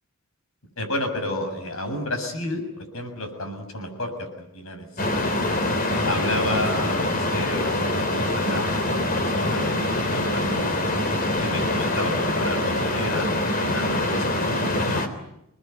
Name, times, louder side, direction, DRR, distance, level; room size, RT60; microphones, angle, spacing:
voice 1, 0.8-2.6 2.9-5.4 6.0-10.8 11.4-15.1, left 1 dB, 75° left, 6 dB, 7.1 m, -31 dB
sound 1, 5.0-15.1, left 1 dB, 40° left, 3.6 m, -24 dB
28.5 x 20.5 x 9.3 m, 0.83 s
head